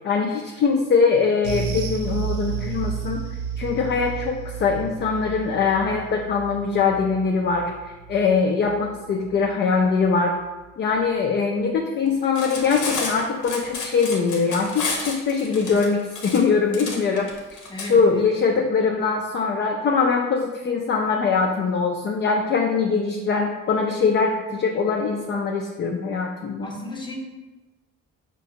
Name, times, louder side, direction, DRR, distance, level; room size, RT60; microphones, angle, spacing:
voice 1, 0.0-3.2 3.6-7.7 8.1-10.4 10.8-17.3 17.8-26.7, left 5 dB, 40° left, 1 dB, 0.4 m, -22 dB
sound 1, 1.4-10.1 10.4-10.6 11.0-11.1, right 7 dB, 80° right, 0.6 m, -32 dB
Cutlery silverware, 12.2-17.9, left 4 dB, 80° left, 0.8 m, -31 dB
voice 2, 17.7-18.2 26.6-27.2, left 1 dB, 15° left, -1 dB, 0.8 m, -34 dB
4.9 x 2.2 x 2.7 m, 1.2 s
cardioid pair, 90°, 30 cm